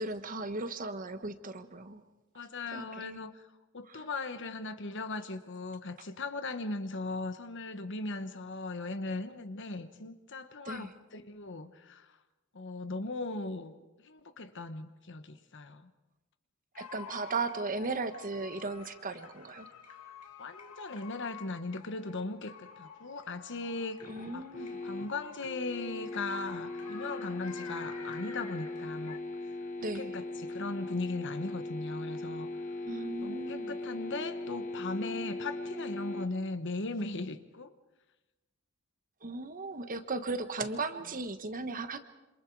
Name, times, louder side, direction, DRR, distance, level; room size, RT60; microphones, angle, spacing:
voice 1, 0.0-2.0 2.7-3.2 3.9-4.1 10.6-10.9 16.7-19.7 24.1-24.8 29.8-30.2 32.9-33.8 39.2-42.0, right 3 dB, 40° right, 9 dB, 1.2 m, -36 dB
voice 2, 2.3-3.4 3.7-12.1 12.5-15.9 20.4-24.0 24.3-24.5 24.8-29.2 29.9-32.5 33.2-37.7, left 3 dB, 55° left, 10 dB, 1.2 m, -38 dB
sound 1, 16.7-29.2, left 6 dB, 80° left, 2.5 m, -50 dB
sound 2, 24.0-36.3, left 2 dB, 35° left, 1.3 m, -39 dB
27.5 x 26.5 x 4.8 m, 1.1 s
head